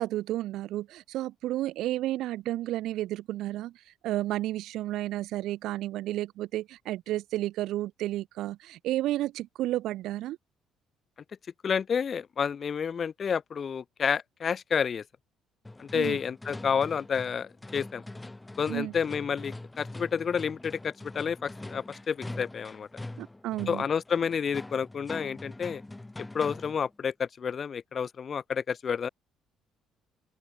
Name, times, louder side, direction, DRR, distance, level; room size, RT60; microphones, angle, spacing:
voice 1, 0.0-3.7 4.0-10.4 15.9-16.2 18.7-18.9 23.2-23.8, right 15 dB, 70° right, 0.6 m, -32 dB
voice 2, 11.6-15.0 15.8-18.0 18.6-22.9 23.7-25.8 26.2-29.1, left 6 dB, 45° left, 2.1 m, -30 dB
sound 1, 15.6-26.9, left 2 dB, 15° left, 1.8 m, -43 dB
open air
supercardioid pair, 65°, 0 cm